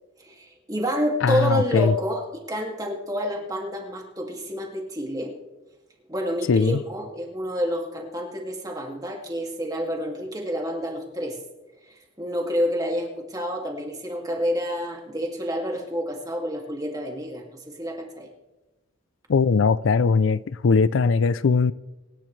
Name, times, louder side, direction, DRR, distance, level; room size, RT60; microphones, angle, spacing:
voice 1, 0.2-5.3 6.1-11.4 11.9-18.3, equal, 20° right, 1 dB, 2.3 m, -29 dB
voice 2, 1.2-1.9 6.5-6.8 19.3-21.7, left 5 dB, 80° left, 18 dB, 0.4 m, -20 dB
24.5 x 11.5 x 3.3 m, 1.1 s
head